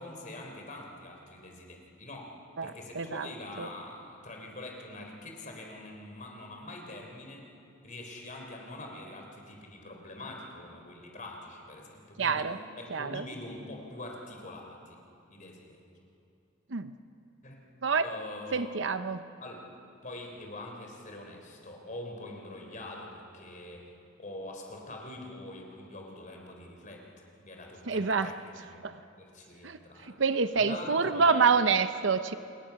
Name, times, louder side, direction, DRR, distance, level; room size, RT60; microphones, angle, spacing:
voice 1, 0.0-7.5 7.8-12.5 12.8-15.0 15.3-15.8 17.4-17.6 18.0-18.7 19.4-19.7 20.0-23.9 24.2-27.1 27.4-28.7 29.2-30.2 30.6-31.6, left 1 dB, 40° left, 2 dB, 3.7 m, -44 dB
voice 2, 2.6-3.3 3.6-3.7 12.2-12.6 12.9-13.2 16.7-16.9 17.8-18.1 18.5-19.2 27.9-28.3 28.8-28.9 29.6-32.3, right 5 dB, 65° right, 11 dB, 0.7 m, -27 dB
28.0 x 21.0 x 5.9 m, 2.7 s
head